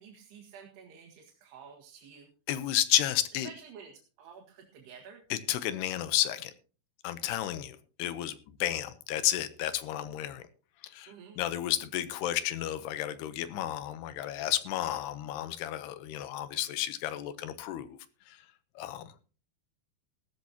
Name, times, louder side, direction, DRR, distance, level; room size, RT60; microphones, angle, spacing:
voice 1, 0.0-2.3 3.4-5.2 11.1-11.4, right 7 dB, 80° right, 1 dB, 3.7 m, -51 dB
voice 2, 2.5-3.5 5.3-6.5 7.0-10.4 10.8-18.0 18.3-18.4 18.8-19.1, left 13 dB, 80° left, 13 dB, 2.9 m, -32 dB
17.0 x 13.5 x 2.9 m, 0.35 s
omnidirectional pair, 4.7 m